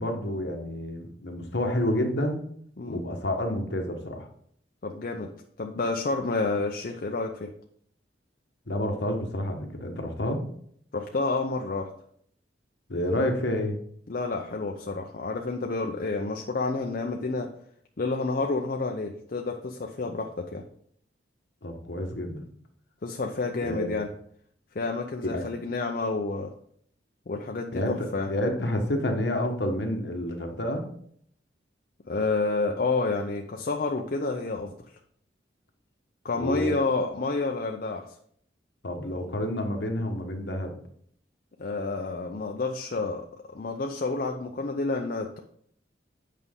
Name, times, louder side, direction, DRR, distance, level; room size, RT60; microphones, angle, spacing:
voice 1, 0.0-2.4 2.9-4.3 8.7-10.4 12.9-13.8 21.6-22.4 23.6-24.0 25.2-25.4 27.7-30.8 36.4-36.8 38.8-40.8, left 1 dB, 65° left, 3 dB, 1.3 m, -29 dB
voice 2, 4.8-5.3 5.6-7.5 10.9-11.9 14.1-17.5 18.0-20.6 23.0-24.1 24.7-26.5 27.3-28.3 32.1-34.7 36.2-38.0 41.6-45.4, left 3 dB, 50° left, 2 dB, 0.6 m, -29 dB
8.4 x 5.4 x 3.7 m, 0.66 s
head